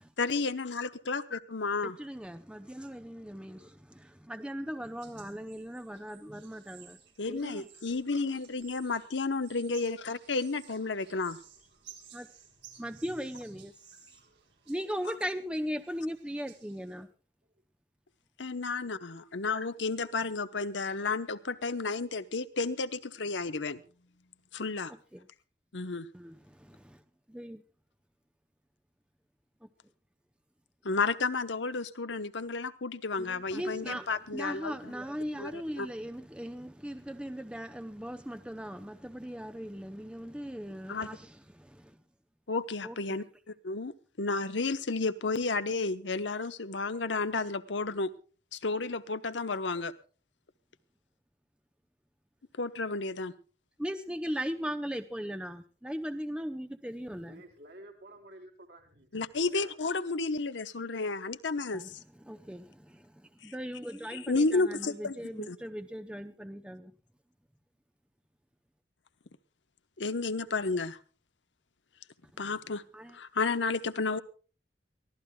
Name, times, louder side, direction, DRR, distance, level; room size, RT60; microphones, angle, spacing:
voice 1, 0.2-2.0 7.2-11.4 18.4-23.8 24.5-24.9 25.7-26.1 30.8-34.9 35.4-35.9 40.9-41.1 42.5-43.2 43.6-48.1 48.5-49.9 52.6-53.3 59.1-62.0 63.4-63.5 64.1-65.2 65.5-65.6 70.0-71.0 72.4-72.8 73.1-74.2, left 3 dB, 85° left, 1.0 m, -32 dB
voice 2, 1.8-7.0 7.3-7.7 12.1-12.3 12.8-13.7 14.7-17.1 25.1-25.3 26.1-27.0 27.3-27.6 29.6-29.7 33.2-42.0 42.8-43.2 53.8-57.4 61.7-66.9 72.3-72.4 72.9-73.2, equal, 5° right, 0.7 m, -39 dB
sound 1, 4.8-17.1, right 9 dB, 80° right, 4.2 m, -56 dB
voice 3, 7.4-8.1 11.1-11.2 11.7-11.9 12.6-13.3 14.1-14.4 16.5-16.6 19.4-19.5 57.1-59.8, right 1 dB, 65° right, 3.8 m, -55 dB
23.5 x 15.5 x 2.3 m
head